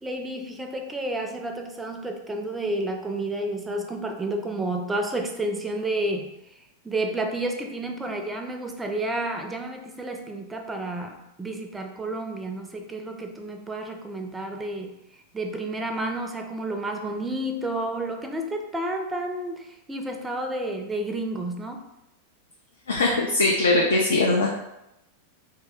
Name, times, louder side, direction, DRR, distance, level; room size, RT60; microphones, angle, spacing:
voice 1, 0.0-6.3 6.8-15.0 15.3-21.8, right 1 dB, 10° right, 4 dB, 0.4 m, -30 dB
voice 2, 22.9-24.5, left 2 dB, 70° left, -1 dB, 0.4 m, -21 dB
2.7 x 2.1 x 3.5 m, 0.87 s
figure-of-eight pair, 90°, 0 cm